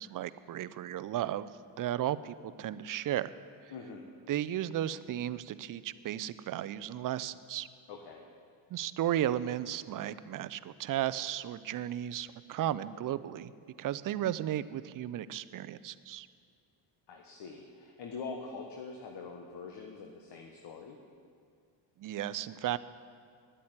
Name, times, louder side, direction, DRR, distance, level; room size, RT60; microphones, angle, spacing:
voice 1, 0.0-1.5 1.8-3.3 4.3-7.7 8.7-13.5 13.8-16.3 22.0-22.8, right 12 dB, 45° right, 15 dB, 0.6 m, -34 dB
voice 2, 3.7-4.1 7.9-8.2 17.1-21.0, left 4 dB, 60° left, 2 dB, 1.4 m, -44 dB
10.5 x 8.5 x 9.9 m, 2.2 s
supercardioid pair, 75°, 46 cm